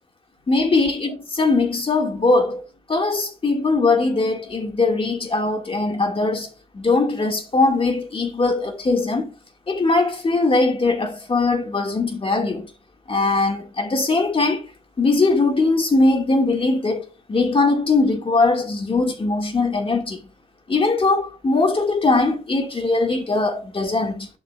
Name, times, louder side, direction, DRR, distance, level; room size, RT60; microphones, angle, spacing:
voice 1, 0.5-2.6 2.9-6.5 6.7-9.3 9.7-12.7 13.1-14.7 15.0-20.2 20.7-24.3, left 3 dB, 25° left, 1.7 m, -20 dB
11.0 x 4.5 x 2.2 m
cardioid pair, 90°, 20 cm